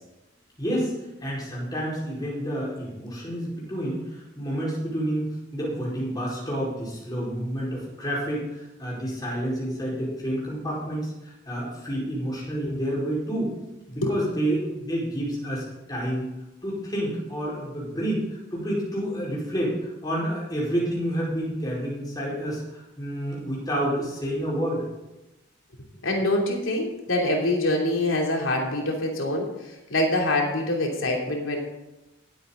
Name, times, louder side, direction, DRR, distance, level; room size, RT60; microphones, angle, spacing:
voice 1, 0.6-0.9 1.2-13.5 13.9-16.3 16.6-18.2 18.5-24.8, equal, 20° left, -5 dB, 4.7 m, -29 dB
voice 2, 26.0-31.6, left 1 dB, 75° left, 0 dB, 3.1 m, -25 dB
18.5 x 8.4 x 3.9 m, 0.96 s
head